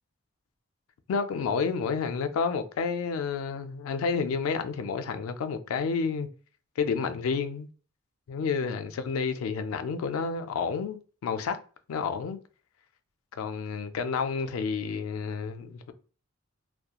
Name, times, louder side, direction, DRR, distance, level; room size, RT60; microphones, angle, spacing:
voice 1, 1.1-6.3 6.8-7.7 8.3-11.6 11.9-12.4 13.3-15.9, left 5 dB, 90° left, 0.3 m, -30 dB
2.8 x 2.2 x 2.3 m
head